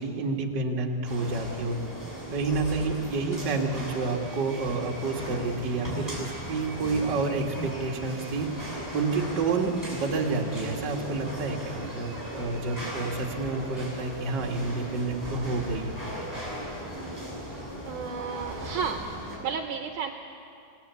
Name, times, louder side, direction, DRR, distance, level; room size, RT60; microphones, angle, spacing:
voice 1, 0.0-1.8 2.3-15.9, right 3 dB, 35° right, 0 dB, 2.0 m, -29 dB
sound 1, 1.0-19.4, equal, 5° left, 7.4 m, -37 dB
voice 2, 17.9-19.0 19.4-20.1, right 6 dB, 70° right, 5 dB, 2.1 m, -32 dB
27.0 x 19.0 x 8.3 m, 2.6 s
omnidirectional pair, 4.3 m